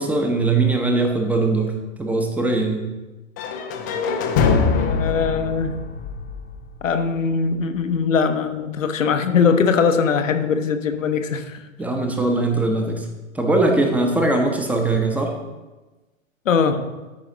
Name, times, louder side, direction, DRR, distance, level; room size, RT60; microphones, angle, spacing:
voice 1, 0.0-1.7 2.0-2.9 11.8-13.1 13.3-15.4, right 2 dB, 5° right, 3 dB, 0.7 m, -20 dB
sound 1, 3.4-7.3, left 5 dB, 15° left, 0.3 m, -23 dB
voice 2, 4.4-5.7 6.8-11.6 16.5-16.8, left 5 dB, 70° left, 8 dB, 0.9 m, -21 dB
13.0 x 5.0 x 3.8 m, 1.2 s
figure-of-eight pair, 100°, 41 cm